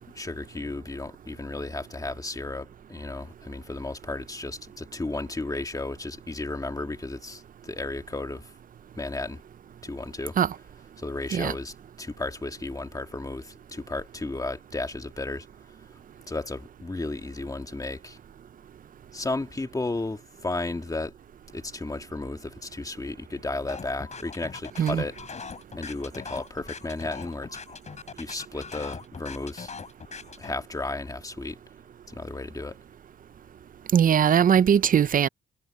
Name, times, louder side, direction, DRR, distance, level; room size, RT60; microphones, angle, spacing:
voice 1, 0.1-8.5 8.9-9.4 9.8-10.4 11.0-15.5 16.3-18.2 19.1-21.1 21.5-25.2 25.8-27.6 28.2-29.7 30.4-31.6 32.1-32.8, left 2 dB, 15° left, 2.1 m, -34 dB
sound 1, 23.7-30.5, left 5 dB, 35° left, 3.7 m, -41 dB
voice 2, 33.9-35.3, right 8 dB, 45° right, 0.6 m, -20 dB
cardioid pair, 90°, 20 cm